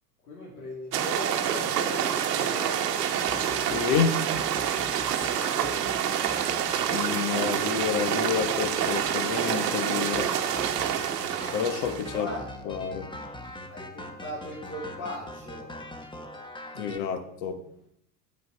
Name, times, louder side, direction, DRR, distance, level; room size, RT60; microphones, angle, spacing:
voice 1, 0.3-3.3 5.5-5.8 12.1-12.5 13.7-15.7, left 1 dB, 80° left, -5 dB, 3.0 m, -38 dB
sound 1, 0.9-12.2, right 9 dB, 85° right, 1.1 m, -27 dB
sound 2, 3.3-17.0, left 1 dB, 10° left, 1.0 m, -42 dB
voice 2, 3.7-4.2 6.9-10.3 11.5-12.3 12.6-13.1 16.7-17.6, left 7 dB, 60° left, 9 dB, 1.4 m, -29 dB
7.8 x 7.7 x 5.6 m, 0.74 s
hypercardioid pair, 90°, 47 cm